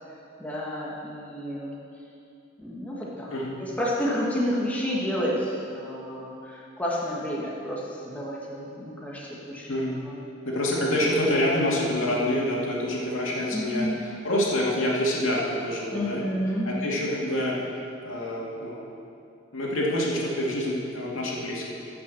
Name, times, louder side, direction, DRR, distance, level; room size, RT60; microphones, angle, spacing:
voice 1, 0.4-1.8 2.6-3.3 3.6-9.7 10.0-10.2 13.5-14.1 15.9-16.7, equal, 10° left, -5 dB, 1.7 m, -30 dB
voice 2, 10.4-16.2 16.6-17.6 18.0-18.8 19.5-21.7, left 1 dB, 80° left, -4 dB, 2.5 m, -26 dB
15.0 x 6.1 x 7.0 m, 2.6 s
head